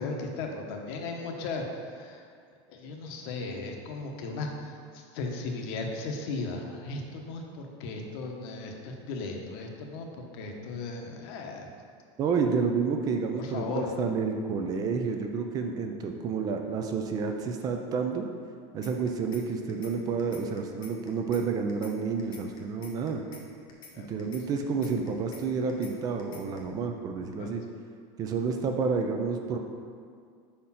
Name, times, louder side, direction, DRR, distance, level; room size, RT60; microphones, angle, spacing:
voice 1, 0.0-2.3 2.7-11.7 13.4-13.9 23.9-24.4 27.4-27.5, left 3 dB, 60° left, 2 dB, 0.9 m, -36 dB
voice 2, 12.2-18.3 18.7-23.2 24.0-27.6 28.2-29.6, right 5 dB, 25° right, 4 dB, 0.4 m, -30 dB
sound 1, 18.8-19.4 19.7-19.9 20.2-21.4 21.7-21.9 22.2-23.4 23.7-23.9 24.2-25.4 25.7-25.9 26.2-26.6, left 5 dB, 30° left, 0.9 m, -48 dB
5.0 x 4.3 x 5.6 m, 2.2 s
supercardioid pair, 165°, 14 cm